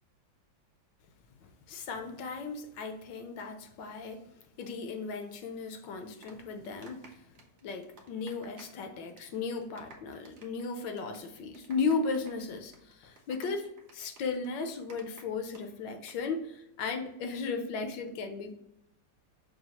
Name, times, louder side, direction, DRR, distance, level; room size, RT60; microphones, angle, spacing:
voice 1, 1.4-4.2 4.6-7.3 7.6-18.5, left 4 dB, 75° left, 6 dB, 1.2 m, -36 dB
sound 1, 5.9-8.8 9.1-9.4 9.6-15.6 15.9-16.1, right 3 dB, 70° right, 0.6 m, -55 dB
5.5 x 2.3 x 2.8 m, 0.85 s
omnidirectional pair, 2.1 m